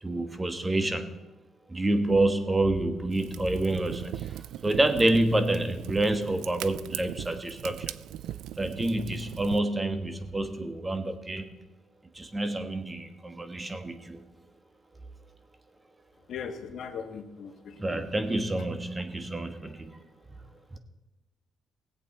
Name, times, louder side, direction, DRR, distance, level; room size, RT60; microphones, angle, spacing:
voice 1, 0.0-1.1 1.7-7.9 8.6-11.5 12.1-14.2 17.8-20.0 20.7-20.8, right 1 dB, 20° right, 8 dB, 1.3 m, -28 dB
Fire, 3.1-9.6, right 12 dB, 90° right, 0.3 m, -39 dB
voice 2, 16.3-18.0, left 6 dB, 70° left, 6 dB, 1.5 m, -39 dB
18.5 x 8.1 x 4.3 m, 1.0 s
cardioid pair, 90°, 0 cm